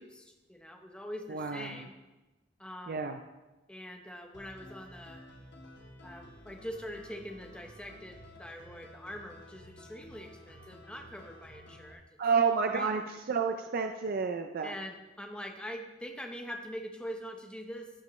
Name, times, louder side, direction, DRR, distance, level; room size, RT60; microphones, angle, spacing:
voice 1, 0.0-2.0 2.6-3.1 3.7-5.2 6.0-12.0 12.7-12.9 14.6-17.9, equal, 5° left, 3 dB, 0.8 m, -43 dB
voice 2, 1.3-1.9 2.9-3.2 12.2-14.7, right 5 dB, 50° right, 5 dB, 0.4 m, -30 dB
sound 1, 4.3-11.9, left 1 dB, 65° left, 1.2 m, -52 dB
14.5 x 5.2 x 3.1 m, 1.1 s
head